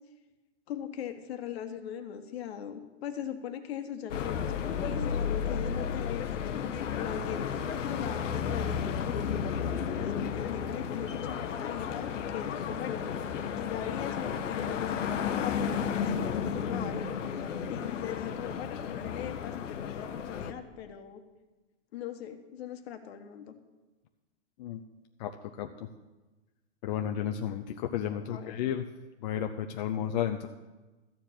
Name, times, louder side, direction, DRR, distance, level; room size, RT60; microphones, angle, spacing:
voice 1, 0.7-6.3 7.0-7.6 7.8-9.6 10.0-13.1 13.5-17.1 17.7-21.2 21.9-23.5 28.1-28.6, left 9 dB, 55° left, 7 dB, 1.3 m, -40 dB
sound 1, 4.1-20.5, left 7 dB, 90° left, 1.0 m, -33 dB
voice 2, 25.6-25.9 26.8-28.8 29.2-30.5, left 9 dB, 35° left, 4 dB, 0.5 m, -32 dB
13.5 x 4.8 x 8.9 m, 1.2 s
hypercardioid pair, 150°, 37 cm